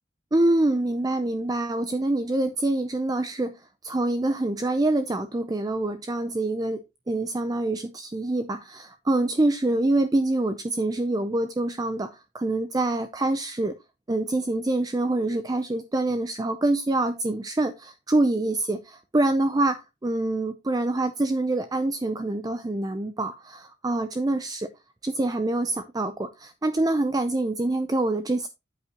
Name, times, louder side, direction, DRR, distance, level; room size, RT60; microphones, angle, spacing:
voice 1, 0.3-13.8 14.1-24.7 25.0-28.5, right 2 dB, 20° right, 0.4 m, -26 dB
8.5 x 7.9 x 2.8 m
head